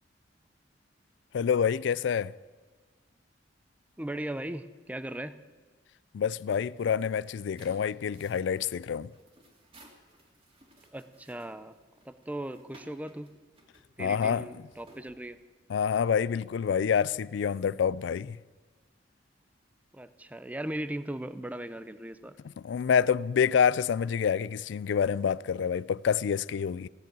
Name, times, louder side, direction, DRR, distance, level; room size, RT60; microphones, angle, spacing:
voice 1, 1.3-2.3 6.1-9.1 14.0-14.5 15.7-18.4 22.6-26.9, left 7 dB, 70° left, 0.3 m, -27 dB
voice 2, 4.0-5.4 10.9-11.8 12.1-13.3 14.0-15.4 19.9-22.4, right 1 dB, 10° right, 0.5 m, -38 dB
sound 1, 6.8-15.8, right 1 dB, 30° right, 2.4 m, -59 dB
16.0 x 7.5 x 9.4 m
head